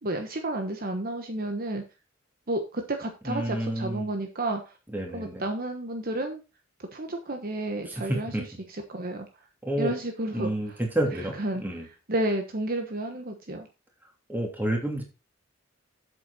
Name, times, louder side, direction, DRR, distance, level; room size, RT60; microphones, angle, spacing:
voice 1, 0.0-1.8 2.5-4.8 5.1-6.4 6.8-8.3 8.9-9.3 9.8-10.5 11.4-11.6 12.1-13.7, right 1 dB, 45° right, 5 dB, 1.1 m, -31 dB
voice 2, 3.2-4.1 4.9-5.4 7.8-8.4 9.6-9.9 10.3-11.9 14.3-15.0, right 1 dB, 10° right, 1 dB, 2.8 m, -29 dB
8.1 x 7.7 x 4.1 m, 0.29 s
head